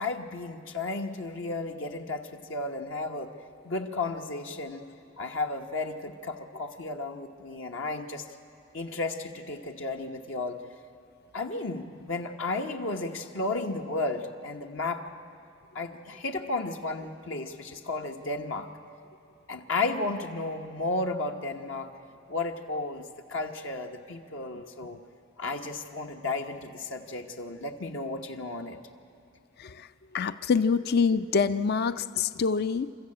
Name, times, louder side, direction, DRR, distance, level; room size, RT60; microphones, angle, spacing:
voice 1, 0.0-3.3 3.6-4.8 5.2-8.2 8.7-10.6 11.3-15.0 15.7-18.7 19.5-21.9 22.3-25.0 25.4-28.8, left 3 dB, 70° left, 3 dB, 1.1 m, -33 dB
voice 2, 29.6-32.9, left 5 dB, 50° left, 13 dB, 0.4 m, -26 dB
27.5 x 13.5 x 8.7 m, 2.7 s
head